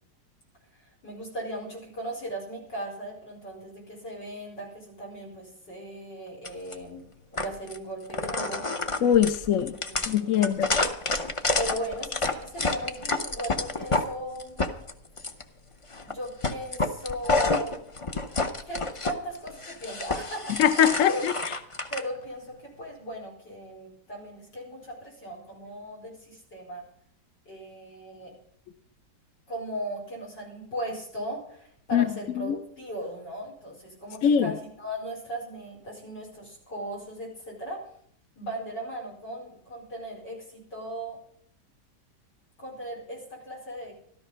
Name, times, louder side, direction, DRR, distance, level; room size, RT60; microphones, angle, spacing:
voice 1, 0.8-7.1 7.3-8.6 9.7-10.5 11.6-14.7 16.0-17.8 18.7-20.7 21.1-21.2 21.9-26.8 27.5-28.3 29.5-37.8 38.4-41.2 42.6-43.9, right 1 dB, 85° left, 0 dB, 5.3 m, -37 dB
sound 1, 6.4-6.7 7.4-7.8 8.1-14.1 14.4-15.4 15.9-16.1 16.4-19.1 19.5-22.0, left 3 dB, 40° left, 0.4 m, -28 dB
voice 2, 9.0-9.8 10.1-10.7 20.6-21.3 31.9-32.1 32.4-32.6 34.2-34.5, left 9 dB, 60° left, 10 dB, 1.0 m, -22 dB
13.5 x 13.0 x 5.6 m, 0.63 s
omnidirectional pair, 1.8 m